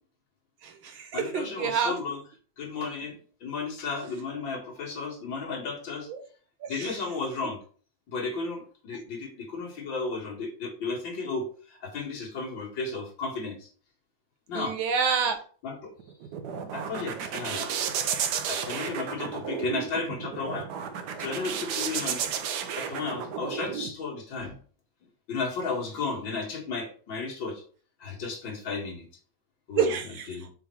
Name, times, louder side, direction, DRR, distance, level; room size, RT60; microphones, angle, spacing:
voice 1, 0.6-2.0 6.1-6.2 6.6-7.0 14.5-15.4 29.7-30.5, right 6 dB, 90° right, 5 dB, 1.9 m, -28 dB
voice 2, 1.1-2.2 2.6-6.1 6.7-7.6 8.1-13.7 14.5-14.8 15.6-15.9 16.7-17.8 18.5-20.7 21.2-24.6 25.3-27.6 28.0-29.1 29.7-29.9 30.3-30.5, left 4 dB, 70° left, -1 dB, 2.5 m, -34 dB
sound 1, 16.0-23.9, right 7 dB, 65° right, 1.2 m, -33 dB
5.9 x 3.7 x 4.5 m, 0.42 s
omnidirectional pair, 2.1 m